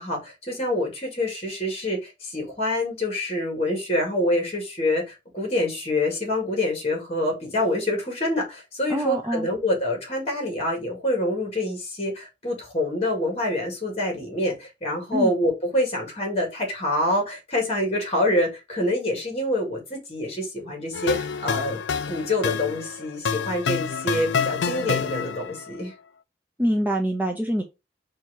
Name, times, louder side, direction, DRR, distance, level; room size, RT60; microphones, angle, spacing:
voice 1, 0.0-21.8 22.1-25.9, left 1 dB, 35° left, 1.9 m, -26 dB
voice 2, 8.9-9.5 15.1-15.3 26.6-27.6, equal, 10° right, 0.5 m, -24 dB
sound 1, 20.9-25.6, left 6 dB, 85° left, 0.5 m, -28 dB
4.4 x 2.6 x 4.6 m
head